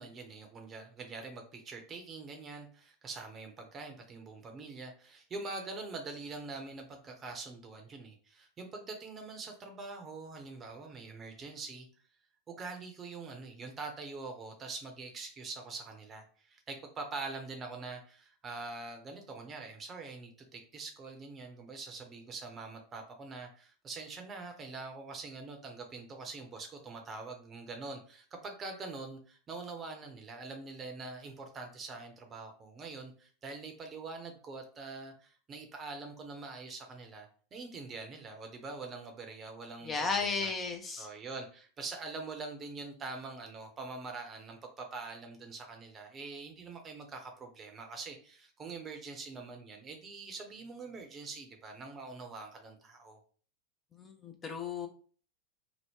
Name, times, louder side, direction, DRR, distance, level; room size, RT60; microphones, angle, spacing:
voice 1, 0.0-11.9 12.5-40.5 41.0-53.2, right 3 dB, 25° right, 3 dB, 0.8 m, -44 dB
voice 2, 39.8-41.1 54.0-54.9, left 4 dB, 25° left, 4 dB, 0.5 m, -34 dB
2.9 x 2.0 x 3.6 m, 0.42 s
figure-of-eight pair, 85°, 0 cm